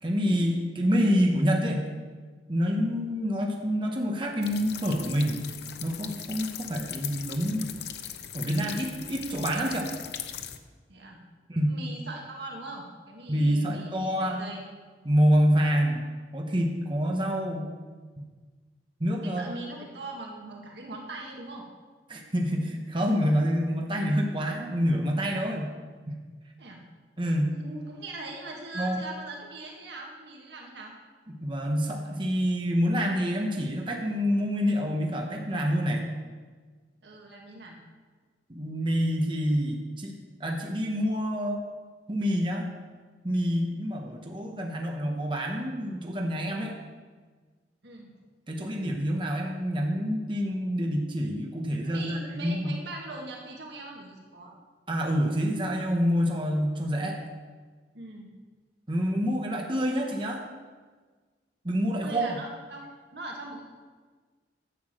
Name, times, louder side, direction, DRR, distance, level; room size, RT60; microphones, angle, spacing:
voice 1, 0.0-1.9 2.5-5.4 5.8-7.7 8.3-9.9 11.5-11.8 13.3-14.4 15.0-16.1 16.3-17.7 19.0-19.6 22.1-25.7 26.1-26.2 27.2-27.5 28.7-29.0 31.4-36.0 38.5-40.1 40.4-41.6 42.1-42.7 43.2-46.8 48.5-52.7 54.9-57.2 58.9-60.4 61.6-62.3, equal, 25° right, 1 dB, 1.1 m, -27 dB
sound 1, 4.4-10.6, left 9 dB, 60° left, 0.7 m, -39 dB
voice 2, 10.9-11.2 11.7-14.6 19.2-21.6 26.6-26.8 27.6-30.9 37.0-37.8 47.8-48.1 51.8-54.6 57.9-58.3 62.0-63.7, right 2 dB, 70° right, 0 dB, 1.8 m, -41 dB
11.0 x 7.1 x 7.7 m, 1.4 s
head